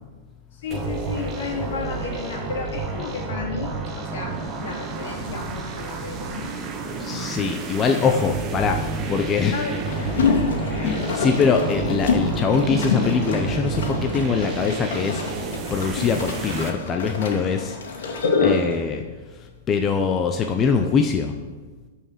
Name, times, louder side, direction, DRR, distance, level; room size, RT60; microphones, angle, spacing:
voice 1, 0.5-6.5 7.8-8.3 9.5-10.5, left 4 dB, 65° left, 0 dB, 2.9 m, -33 dB
sound 1, 0.7-16.7, right 4 dB, 20° right, 1.0 m, -30 dB
voice 2, 7.0-9.5 10.8-15.2 15.7-19.0 19.3-21.3, left 5 dB, 15° left, 4 dB, 0.5 m, -23 dB
sound 2, 9.9-18.8, left 4 dB, 80° left, 2.6 m, -26 dB
13.0 x 5.6 x 6.5 m, 1.3 s
supercardioid pair, 170°, 0 cm